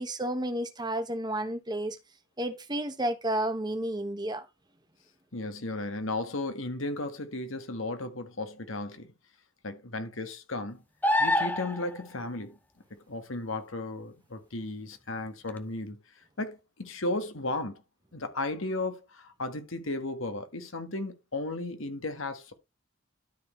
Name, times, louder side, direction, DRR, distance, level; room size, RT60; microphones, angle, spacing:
voice 1, 0.0-2.0 2.4-4.4, right 1 dB, 20° right, 1.2 m, -31 dB
voice 2, 5.3-9.1 9.6-10.8 11.2-12.5 12.9-16.0 16.4-17.8 18.1-22.5, left 2 dB, 75° left, 1.7 m, -35 dB
sound 1, 11.0-12.0 15.5-15.6, left 1 dB, 10° left, 0.7 m, -25 dB
12.5 x 4.3 x 4.4 m
head